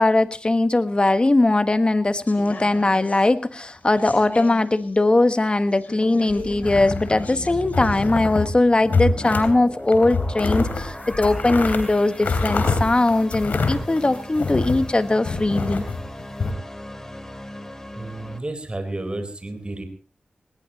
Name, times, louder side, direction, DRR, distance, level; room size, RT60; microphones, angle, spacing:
voice 1, 0.0-15.9, left 2 dB, 30° left, 11 dB, 1.4 m, -20 dB
sound 1, 2.3-8.1 8.3-8.4, left 3 dB, 60° left, 5.1 m, -39 dB
sound 2, 6.3-18.4, left 1 dB, 15° left, 2.8 m, -38 dB
sound 3, 6.6-7.3 7.7-8.5 8.8-9.5 9.9-14.9 15.2-16.5, left 3 dB, 80° left, 3.0 m, -25 dB
voice 2, 17.9-19.8, right 2 dB, 35° right, 7 dB, 4.1 m, -31 dB
19.5 x 19.0 x 3.0 m, 0.38 s
cardioid pair, 50°, 3 cm